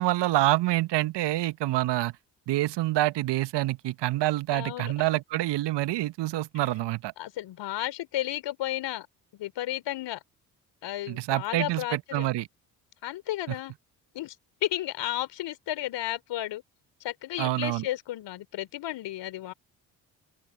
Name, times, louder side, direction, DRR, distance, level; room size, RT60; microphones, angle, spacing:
voice 1, 0.0-2.1 2.5-7.1 11.1-12.5 17.4-17.8, right 16 dB, 55° right, 1.7 m, -27 dB
voice 2, 4.5-5.2 6.5-6.6 7.2-9.1 9.3-10.2 10.8-12.3 13.0-13.7 14.1-14.4 14.6-16.6 17.0-19.5, left 14 dB, 55° left, 4.0 m, -33 dB
figure-of-eight pair, 50°, 49 cm